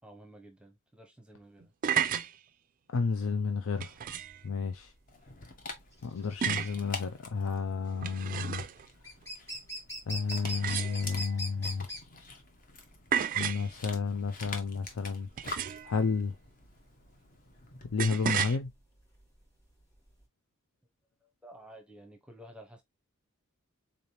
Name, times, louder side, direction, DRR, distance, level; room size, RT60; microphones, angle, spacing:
voice 1, 0.0-1.7 21.4-22.8, right 1 dB, 5° right, 0.7 m, -52 dB
sound 1, 1.6-2.3 3.8-4.4 6.4-6.8 7.9-8.9 10.4-11.3 13.1-13.7 15.4-16.0 18.0-18.6, right 8 dB, 40° right, 0.3 m, -32 dB
voice 2, 2.9-3.9 4.4-4.9 6.0-8.7 10.1-11.9 13.4-15.3 15.8-16.3 17.8-18.7, left 5 dB, 70° left, 0.5 m, -31 dB
sound 2, 3.9-20.2, equal, 15° left, 1.3 m, -44 dB
Dog, 5.1-18.0, left 3 dB, 40° left, 0.8 m, -47 dB
3.9 x 3.3 x 2.7 m
head